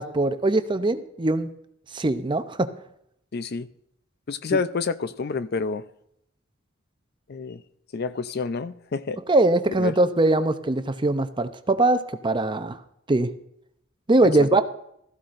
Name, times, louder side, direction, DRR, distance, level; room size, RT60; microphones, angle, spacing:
voice 1, 0.0-1.5 1.9-2.7 9.3-12.8 13.1-13.3 14.1-14.6, right 2 dB, 25° right, 10 dB, 0.6 m, -21 dB
voice 2, 3.3-3.7 4.3-5.8 7.3-7.6 7.9-9.2 9.8-9.9 14.2-14.6, left 4 dB, 50° left, 13 dB, 0.5 m, -28 dB
15.5 x 14.0 x 2.6 m, 0.75 s
head